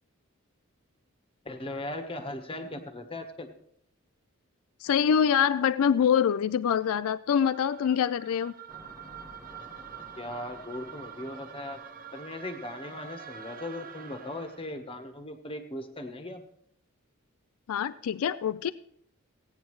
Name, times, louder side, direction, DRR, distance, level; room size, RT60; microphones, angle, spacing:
voice 1, 1.4-3.5 10.2-11.8 12.1-16.4, left 1 dB, 25° left, 7 dB, 1.1 m, -38 dB
voice 2, 4.8-8.5 17.7-18.7, left 8 dB, 70° left, 15 dB, 0.3 m, -25 dB
sound 1, 7.5-14.8, right 8 dB, 40° right, 0.7 m, -46 dB
sound 2, 8.7-14.0, equal, 5° right, 0.9 m, -54 dB
16.5 x 9.3 x 3.1 m, 0.69 s
head